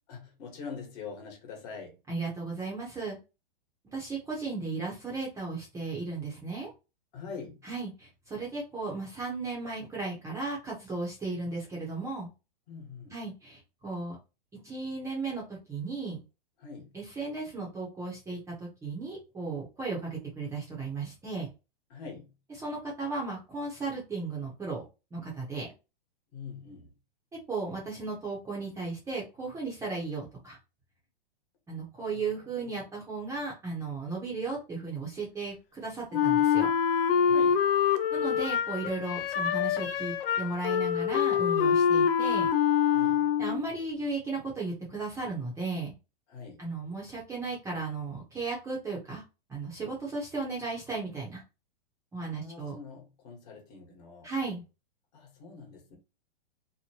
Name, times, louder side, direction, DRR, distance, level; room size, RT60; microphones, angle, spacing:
voice 1, 0.1-2.0 7.1-7.6 12.7-13.2 16.6-16.9 21.9-22.3 26.3-26.9 32.1-32.9 37.2-37.6 42.9-43.3 46.3-46.6 52.3-54.3 55.1-56.0, left 5 dB, 45° left, 1.3 m, -44 dB
voice 2, 2.1-3.2 3.9-6.7 7.6-12.3 13.1-14.2 14.6-16.2 16.9-21.5 22.6-24.8 25.1-25.7 27.5-30.6 31.7-36.7 38.1-42.5 43.4-45.9 46.6-49.2 49.5-51.4 52.1-52.7 54.2-54.6, right 3 dB, 10° right, 0.7 m, -35 dB
Wind instrument woodwind instrument, 36.1-43.7, left 8 dB, 75° left, 0.5 m, -25 dB
2.9 x 2.1 x 2.8 m
hypercardioid pair, 140°, 29 cm